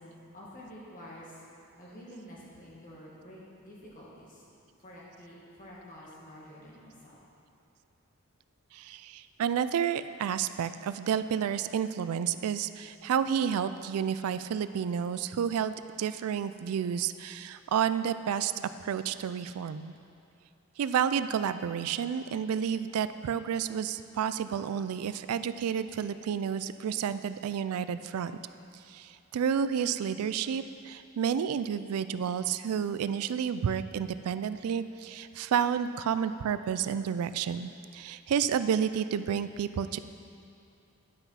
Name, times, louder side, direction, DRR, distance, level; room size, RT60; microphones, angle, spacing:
voice 1, 0.0-1.4 1.8-4.4 4.8-7.2, equal, 40° left, -6 dB, 2.0 m, -49 dB
voice 2, 8.7-18.5 18.8-19.9 20.8-28.3 28.9-40.0, right 8 dB, 85° right, 13 dB, 0.3 m, -30 dB
10.5 x 5.7 x 5.6 m, 2.6 s
head